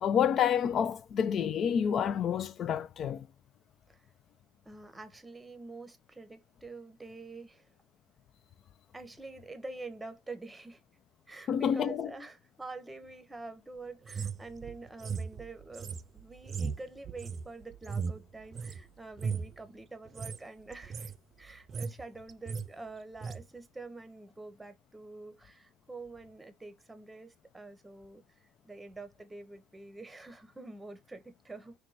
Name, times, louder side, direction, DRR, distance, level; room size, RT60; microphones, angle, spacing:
voice 1, 0.0-3.3 11.5-12.1, left 8 dB, 45° left, 0.4 m, -28 dB
voice 2, 4.6-7.7 8.9-10.8 11.3-21.1 21.4-28.2 28.6-31.7, right 3 dB, 10° right, 0.8 m, -46 dB
sound 1, 14.1-18.8 19.1-19.6 20.1-20.4 20.7-21.2 21.5-22.0 22.3-22.7 23.2-23.4, right 5 dB, 35° right, 0.3 m, -37 dB
4.5 x 2.2 x 4.0 m
supercardioid pair, 105°, 0 cm